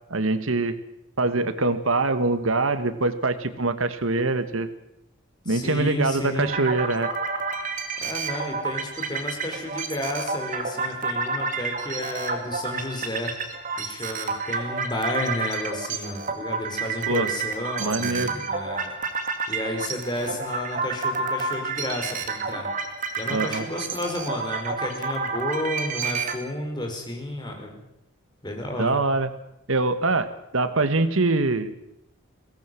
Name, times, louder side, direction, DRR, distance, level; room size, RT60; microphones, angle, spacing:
voice 1, 0.1-0.8 1.2-4.7 5.4-7.1 17.1-17.3 17.8-18.3 23.3-23.7 28.8-29.3 29.7-31.7, right 3 dB, 85° right, 11 dB, 1.6 m, -24 dB
voice 2, 5.5-6.5 8.0-13.3 13.8-18.9 19.5-22.7 23.2-27.7 28.4-29.0, left 1 dB, 20° left, 2 dB, 4.8 m, -31 dB
sound 1, 6.4-26.4, right 4 dB, 40° right, 2.3 m, -30 dB
22.0 x 17.5 x 7.7 m, 0.82 s
head